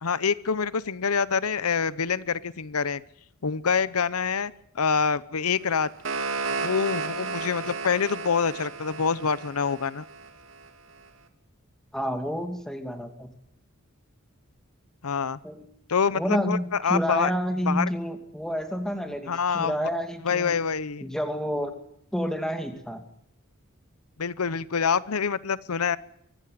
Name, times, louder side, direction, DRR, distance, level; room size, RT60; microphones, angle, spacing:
voice 1, 0.0-3.0 3.4-5.9 6.6-10.0 15.0-15.4 15.9-17.3 17.7-17.9 19.3-19.9 20.2-21.0 24.2-26.0, left 6 dB, 90° left, 18 dB, 0.8 m, -26 dB
sound 1, 5.6-10.7, right 4 dB, 60° right, 2.6 m, -33 dB
voice 2, 11.9-13.3 15.4-15.7 16.1-20.5 21.0-21.7 22.1-23.0, equal, 5° left, 6 dB, 2.5 m, -29 dB
24.5 x 14.5 x 9.4 m, 0.73 s
head